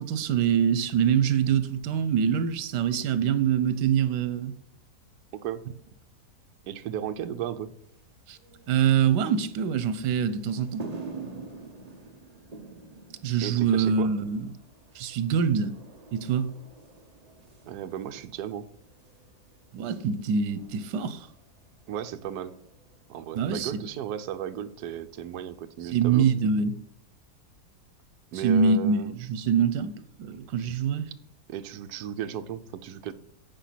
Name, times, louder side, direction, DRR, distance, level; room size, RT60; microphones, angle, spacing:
voice 1, 0.0-4.5 8.3-8.4 8.7-10.8 13.2-14.5 14.9-15.7 16.1-16.5 19.7-21.3 23.3-23.7 25.9-26.8 28.3-29.9 30.2-31.1, right 7 dB, 90° right, 1.3 m, -24 dB
voice 2, 5.3-5.6 6.7-7.7 13.4-14.1 17.6-18.7 21.9-22.6 23.1-26.3 28.3-29.1 31.5-33.1, right 10 dB, 70° right, 1.2 m, -35 dB
sound 1, 7.8-26.5, right 4 dB, 30° right, 0.8 m, -48 dB
9.0 x 5.1 x 5.8 m
omnidirectional pair, 1.8 m